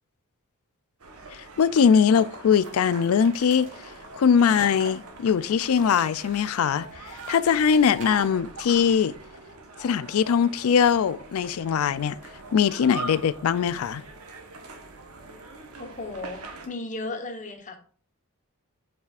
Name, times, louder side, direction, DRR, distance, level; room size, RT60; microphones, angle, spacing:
sound 1, 1.0-16.7, right 3 dB, 80° right, 1.2 m, -42 dB
voice 1, 1.3-3.7 4.1-9.1 9.8-12.2 12.5-14.0, left 7 dB, 70° left, 0.4 m, -21 dB
sound 2, 2.5-8.4, right 1 dB, 60° right, 2.7 m, -45 dB
voice 2, 15.8-17.8, left 2 dB, 35° left, 1.1 m, -35 dB
8.0 x 5.0 x 2.4 m
head